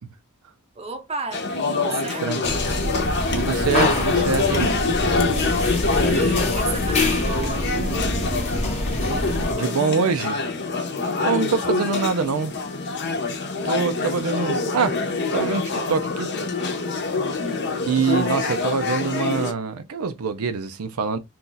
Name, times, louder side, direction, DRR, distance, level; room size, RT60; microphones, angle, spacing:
voice 1, 0.8-1.5 1.8-2.3 5.9-7.8 17.4-17.6, right 3 dB, 30° right, 0.6 m, -33 dB
sound 1, 1.3-19.5, left 3 dB, 55° left, 0.7 m, -25 dB
sound 2, 2.4-9.5, left 1 dB, 30° left, 0.9 m, -26 dB
voice 2, 3.3-4.7 9.5-10.4 11.2-12.5 13.6-15.0 15.3-16.3 17.9-21.2, right 5 dB, 80° right, 0.5 m, -24 dB
2.7 x 2.4 x 3.8 m
head